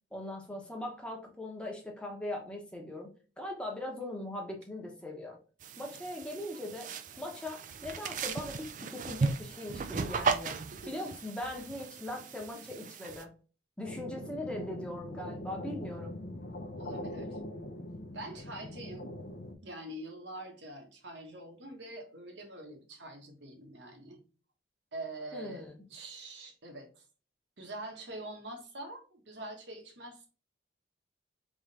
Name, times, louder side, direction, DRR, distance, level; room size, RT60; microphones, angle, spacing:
voice 1, 0.1-3.1 3.4-5.4 5.8-6.9 7.2-13.3 13.8-16.2 25.3-25.7, left 1 dB, 5° left, 0 dB, 0.9 m, -40 dB
sound 1, 5.6-13.2, right 4 dB, 40° right, 0.3 m, -36 dB
voice 2, 10.7-11.1 16.8-17.4 18.1-19.1 19.6-24.2 24.9-27.0 27.6-30.3, right 1 dB, 70° right, 3 dB, 1.1 m, -45 dB
sound 2, 13.8-19.5, left 1 dB, 55° left, 0.7 m, -42 dB
3.6 x 3.1 x 4.0 m, 0.37 s
head